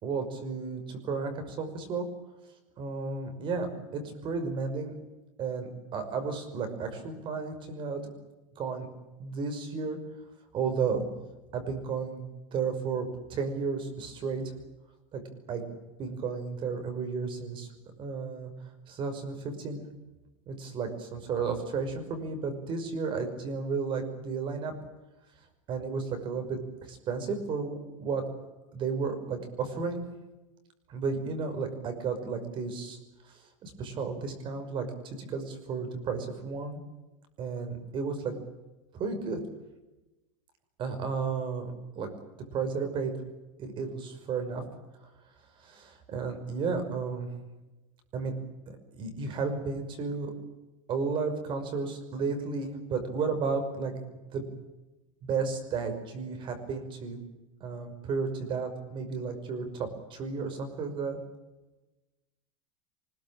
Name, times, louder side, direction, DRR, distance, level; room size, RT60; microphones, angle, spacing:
voice 1, 0.0-2.1 2.8-4.9 5.4-8.0 8.6-8.9 9.2-10.0 10.5-11.1 11.5-14.5 15.1-15.2 15.5-15.6 16.0-17.7 18.0-18.5 18.9-19.9 20.5-24.7 25.7-26.6 26.9-28.2 28.7-30.0 30.9-33.0 33.2-36.8 37.4-38.3 38.9-39.4 40.8-42.1 42.5-43.1 43.6-44.6 45.6-47.3 48.1-48.3 48.7-50.3 50.9-53.9 54.3-54.5 55.2-57.2 57.6-61.2, right 5 dB, 30° right, 7 dB, 5.7 m, -33 dB
25.0 x 21.0 x 9.0 m, 1.1 s
supercardioid pair, 160°, 17 cm